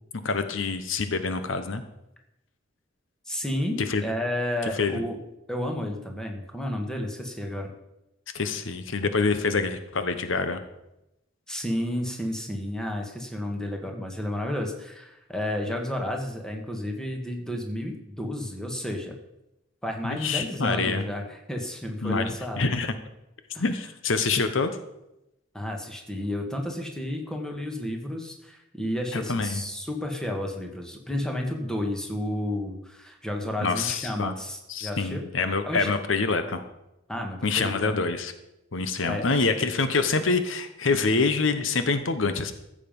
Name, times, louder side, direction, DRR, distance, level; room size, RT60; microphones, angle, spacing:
voice 1, 0.2-1.8 3.9-4.0 4.8-5.0 8.3-10.6 20.0-21.0 22.0-22.9 23.6-24.7 29.1-29.6 33.6-34.3 34.7-36.6 37.4-38.3 38.7-42.5, left 4 dB, 70° left, 9 dB, 0.9 m, -26 dB
voice 2, 3.3-5.2 5.5-7.7 11.5-19.2 19.8-22.6 23.5-23.6 25.5-35.3 35.6-35.9 37.1-38.0 39.0-39.3, left 1 dB, 5° left, 2 dB, 1.6 m, -31 dB
14.5 x 7.4 x 5.3 m, 0.89 s
head